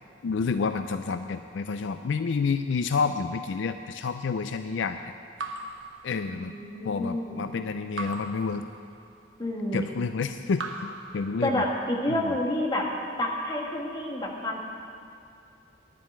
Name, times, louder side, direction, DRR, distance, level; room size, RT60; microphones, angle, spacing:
voice 1, 0.2-5.0 6.0-6.5 6.8-8.6 9.7-10.6 11.1-11.6 12.1-12.3, left 5 dB, 70° left, 9 dB, 0.4 m, -29 dB
Raindrop / Drip, 5.4-6.8 8.0-9.3 10.5-12.0, right 3 dB, 85° right, 1.0 m, -40 dB
voice 2, 6.2-7.5 9.4-9.8 11.4-12.9 13.2-14.6, left 1 dB, 20° left, -1 dB, 1.5 m, -29 dB
10.5 x 7.5 x 8.6 m, 2.6 s
head